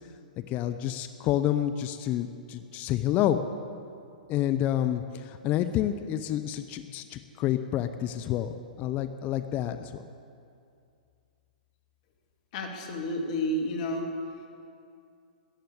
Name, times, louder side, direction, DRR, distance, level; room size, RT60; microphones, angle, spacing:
voice 1, 0.5-3.4 4.3-10.1, left 11 dB, 30° left, 9 dB, 0.6 m, -29 dB
voice 2, 12.5-14.1, equal, 50° left, 2 dB, 2.2 m, -30 dB
14.0 x 9.2 x 8.6 m, 2.4 s
hypercardioid pair, 115°, 5 cm